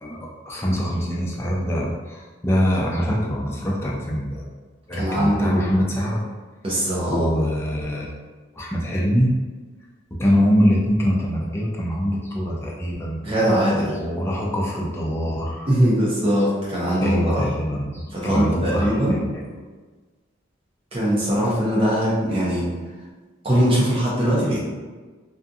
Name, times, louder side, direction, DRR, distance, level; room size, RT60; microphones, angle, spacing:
voice 1, 0.0-4.5 4.9-6.2 7.1-8.1 8.5-9.3 10.1-13.2 13.8-15.7 17.0-19.4, equal, 10° left, -3 dB, 0.3 m, -23 dB
voice 2, 4.9-5.7 6.6-7.4 13.2-13.9 15.7-17.4 18.1-19.2 20.9-22.7 23.4-24.6, equal, 25° right, -7 dB, 0.6 m, -21 dB
2.5 x 2.3 x 2.6 m, 1.3 s
head